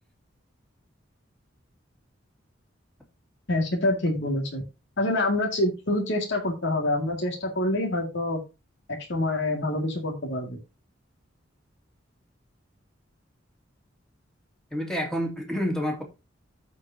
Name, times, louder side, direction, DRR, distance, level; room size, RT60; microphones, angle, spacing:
voice 1, 3.5-4.6 5.0-8.4 8.9-10.6, left 1 dB, 65° left, 2.2 m, -26 dB
voice 2, 14.7-16.0, equal, 5° left, 2.3 m, -28 dB
14.5 x 4.9 x 2.8 m
head